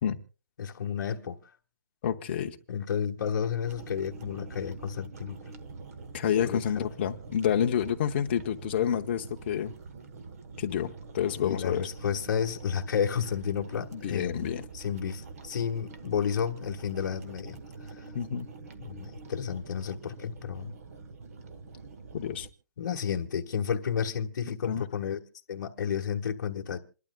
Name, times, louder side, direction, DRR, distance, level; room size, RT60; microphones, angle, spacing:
voice 1, 0.6-1.4 2.7-5.4 6.4-6.8 11.4-17.6 18.0-18.1 18.8-20.7 22.8-25.2 25.5-26.8, left 7 dB, 55° left, 1.4 m, -31 dB
voice 2, 2.0-2.6 6.1-9.7 10.6-11.9 13.9-14.6 18.1-18.5 22.1-22.5 24.6-24.8, left 9 dB, 30° left, 0.8 m, -29 dB
sound 1, 3.6-22.5, right 4 dB, 45° right, 1.2 m, -45 dB
27.5 x 12.0 x 2.2 m
hypercardioid pair, 175°, 11 cm